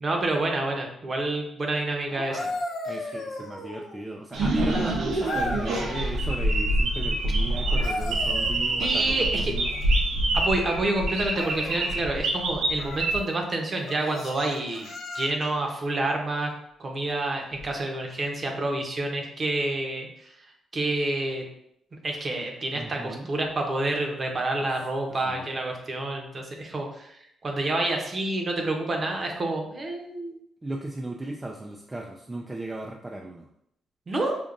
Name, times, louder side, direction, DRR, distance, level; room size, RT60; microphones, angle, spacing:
voice 1, 0.0-2.5 2.8-3.0 4.6-4.7 8.8-9.5 10.3-14.9 15.1-16.5 16.8-20.3 20.7-21.4 22.0-27.1 27.4-30.4 34.1-34.4, right 2 dB, 40° right, 2 dB, 0.9 m, -28 dB
sound 1, 2.1-4.1 5.2-6.2 7.6-9.2 11.3-11.9 12.7-13.2 13.8-15.6 17.5-17.7, left 1 dB, 80° left, 0.8 m, -35 dB
voice 2, 2.9-9.7 22.7-23.3 25.2-25.5 30.6-33.5, right 2 dB, 20° right, 1 dB, 0.4 m, -36 dB
sound 2, 4.3-13.2, right 1 dB, 80° right, 0.7 m, -26 dB
5.1 x 2.5 x 2.5 m, 0.75 s
cardioid pair, 80°, 0 cm